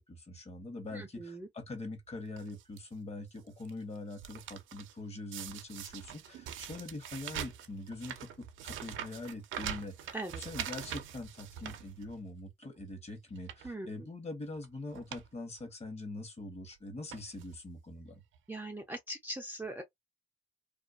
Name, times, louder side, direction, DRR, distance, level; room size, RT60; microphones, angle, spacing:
voice 1, 0.0-10.1 10.4-18.2, left 2 dB, 30° left, 1.0 m, -43 dB
voice 2, 0.9-1.5 10.1-10.4 13.6-13.9 18.5-19.8, right 1 dB, 10° right, 0.5 m, -40 dB
sound 1, 2.4-2.8 3.4-4.9 5.3-12.4 12.8-12.9 13.4-13.7 14.5-14.7 14.9-15.3 15.6-15.7 16.6-16.7 17.1-17.6 18.3-18.4 18.6-18.7, right 9 dB, 75° right, 0.5 m, -43 dB
2.4 x 2.3 x 2.3 m
cardioid pair, 90°, 20 cm